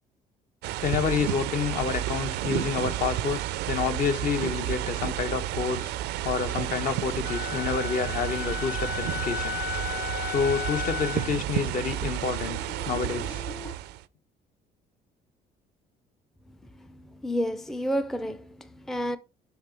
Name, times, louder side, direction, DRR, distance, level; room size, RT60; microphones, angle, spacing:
sound 1, 0.6-14.0, right 13 dB, 80° right, 0.5 m, -31 dB
voice 1, 0.8-5.9 6.2-9.6 10.2-12.6 12.8-13.4, left 6 dB, 55° left, 1.0 m, -29 dB
Wind instrument woodwind instrument, 7.2-11.4, left 9 dB, 70° left, 0.7 m, -34 dB
sound 2, 9.5-13.7, equal, 20° left, 1.0 m, -46 dB
voice 2, 16.8-19.2, equal, ahead, 0.4 m, -31 dB
5.9 x 4.4 x 5.1 m
cardioid pair, 110°, 17 cm